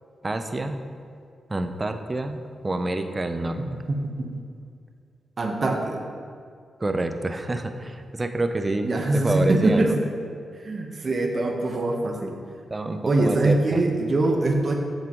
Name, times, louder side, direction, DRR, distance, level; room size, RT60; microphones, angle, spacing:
voice 1, 0.2-0.8 1.5-3.6 6.8-10.0 12.7-13.8, right 2 dB, 30° right, 7 dB, 0.6 m, -27 dB
voice 2, 3.7-4.3 5.4-6.0 8.8-10.0 10.6-12.3 13.1-14.7, right 2 dB, 50° right, 2 dB, 1.1 m, -23 dB
7.6 x 7.3 x 3.0 m, 2.3 s
cardioid pair, 60°, 0 cm